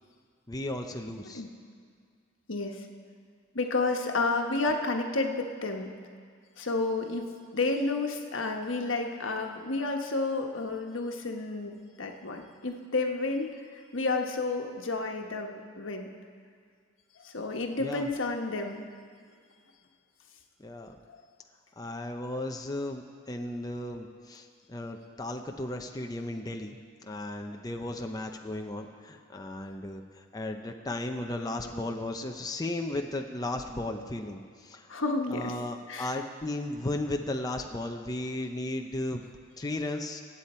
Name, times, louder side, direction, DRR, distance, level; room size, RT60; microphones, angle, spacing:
voice 1, 0.5-1.4 17.8-18.1 20.6-21.0 21.8-35.0 35.3-39.2 39.6-40.2, left 1 dB, 20° left, 3 dB, 0.7 m, -35 dB
voice 2, 2.5-2.8 3.5-5.9 6.6-16.1 17.2-18.9 34.9-35.5 35.9-36.2, left 3 dB, 80° left, 3 dB, 1.2 m, -31 dB
24.0 x 8.4 x 4.4 m, 2.1 s
head